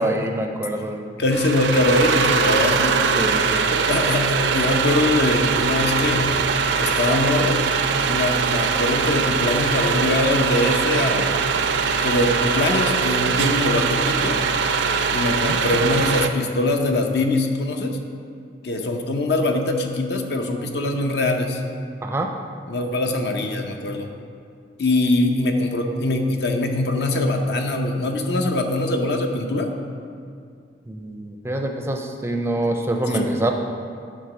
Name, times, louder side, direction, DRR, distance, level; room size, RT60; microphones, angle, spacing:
voice 1, 0.0-1.2 3.2-3.7 15.2-15.6 22.0-22.3 30.9-33.5, right 1 dB, 15° right, 3 dB, 0.4 m, -25 dB
voice 2, 1.2-2.9 3.7-6.4 6.8-7.6 8.1-11.4 12.0-14.4 15.1-18.0 18.6-21.6 22.7-24.1 24.8-29.7 33.1-33.3, left 2 dB, 65° left, 4 dB, 0.7 m, -22 dB
sound 1, 1.3-16.3, right 5 dB, 80° right, 0.4 m, -22 dB
9.5 x 3.7 x 6.1 m, 2.3 s
head